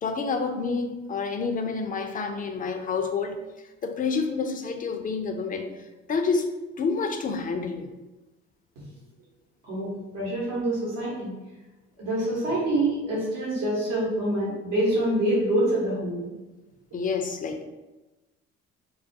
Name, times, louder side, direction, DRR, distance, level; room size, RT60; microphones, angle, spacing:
voice 1, 0.0-3.4 3.8-5.7 6.1-7.9 13.1-13.2 16.9-17.6, left 4 dB, 25° left, 5 dB, 0.3 m, -28 dB
voice 2, 9.6-11.3 12.0-16.3, right 1 dB, 75° right, -7 dB, 0.9 m, -26 dB
2.3 x 2.1 x 2.6 m, 1.1 s
hypercardioid pair, 55°, 31 cm